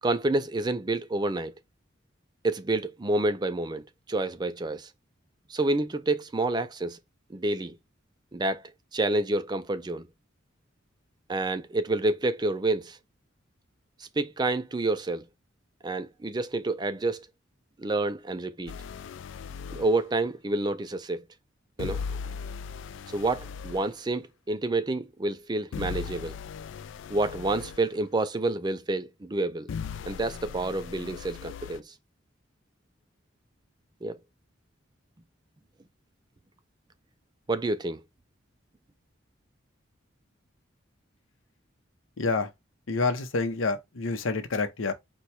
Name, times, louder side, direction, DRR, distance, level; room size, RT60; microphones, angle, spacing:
voice 1, 0.0-1.5 2.4-4.9 5.5-7.0 7.3-7.8 8.3-8.6 8.9-10.1 11.3-13.0 14.0-15.2 15.8-17.3 17.8-18.8 19.7-21.2 21.8-22.0 23.1-26.4 27.1-29.7 30.0-31.9 34.0-34.2 37.5-38.0, right 2 dB, 20° right, 0.4 m, -28 dB
sound 1, 18.7-20.0 21.8-23.9 25.7-27.8 29.7-31.8, left 6 dB, 65° left, 0.3 m, -38 dB
voice 2, 42.2-42.5 42.9-44.9, left 3 dB, 85° left, 0.8 m, -28 dB
4.5 x 2.3 x 4.2 m
head